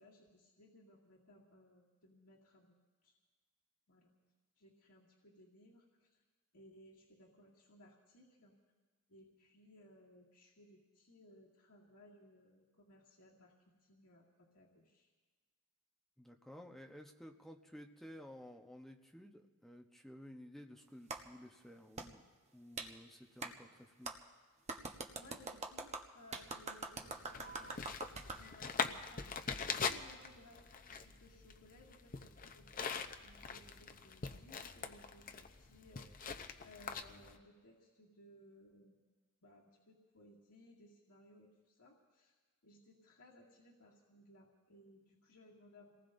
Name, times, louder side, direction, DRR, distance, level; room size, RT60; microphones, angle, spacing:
voice 1, 0.0-3.1 3.9-4.1 4.6-6.2 6.5-8.6 9.1-13.5 13.8-15.1 25.2-29.2 29.5-32.9 33.2-36.1 36.6-39.0 39.4-42.3 42.6-46.1, left 1 dB, 85° left, -4 dB, 2.2 m, -62 dB
voice 2, 16.2-22.2 22.5-24.1, equal, ahead, 2 dB, 0.9 m, -54 dB
Clapping, 21.1-21.2 22.0-22.1 22.8-22.9 23.4-23.5 24.1-24.2 24.7-28.4, right 3 dB, 30° right, 1.0 m, -44 dB
sound 1, 27.0-37.4, left 5 dB, 40° left, 0.7 m, -43 dB
28.0 x 19.0 x 2.6 m, 1.4 s
head